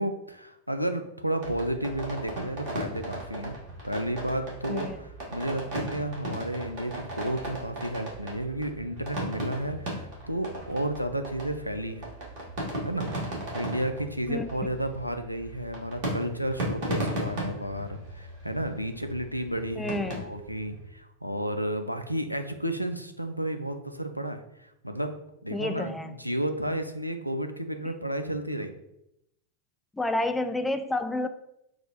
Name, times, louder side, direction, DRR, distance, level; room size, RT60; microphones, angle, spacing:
voice 1, 0.0-3.6 3.8-4.9 5.3-12.1 12.8-25.1 25.4-28.7, right 1 dB, 90° right, 7 dB, 0.3 m, -32 dB
sound 1, 1.4-20.9, right 1 dB, 55° right, 1.6 m, -36 dB
voice 2, 4.7-5.0 14.3-14.4 19.8-20.3 25.5-26.2 27.8-27.9 29.9-31.3, left 2 dB, 10° left, 9 dB, 0.3 m, -30 dB
4.7 x 2.2 x 4.1 m, 0.81 s
figure-of-eight pair, 90°, 0 cm